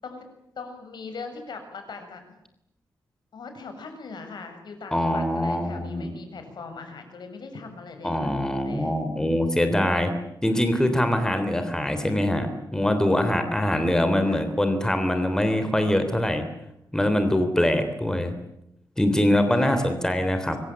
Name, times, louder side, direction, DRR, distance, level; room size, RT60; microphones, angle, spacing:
voice 1, 0.6-2.2 3.3-8.3 8.6-8.9 14.3-14.5 19.5-20.0, left 4 dB, 70° left, 7 dB, 7.3 m, -40 dB
voice 2, 4.9-6.1 8.0-10.1 10.4-12.5 12.7-16.4 16.9-18.3 19.0-20.6, left 1 dB, 10° left, 8 dB, 3.4 m, -23 dB
26.0 x 24.0 x 8.8 m, 0.82 s
wide cardioid pair, 150°, 8 cm